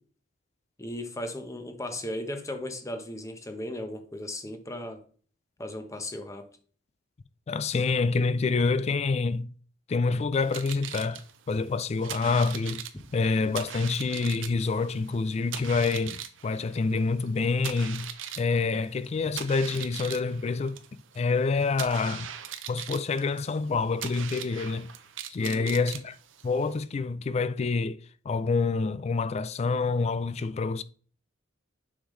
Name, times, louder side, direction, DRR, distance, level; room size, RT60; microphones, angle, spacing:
voice 1, 0.8-5.0 5.6-6.4 25.4-25.8, left 1 dB, 15° left, 0.9 m, -36 dB
voice 2, 7.5-9.5 9.9-12.8 13.1-18.1 18.4-20.8 21.2-22.3 22.7-24.9 25.3-26.2 26.4-28.0 28.3-30.8, left 4 dB, 35° left, 0.3 m, -27 dB
sound 1, 10.3-26.8, right 9 dB, 85° right, 0.7 m, -41 dB
7.0 x 5.4 x 3.1 m
head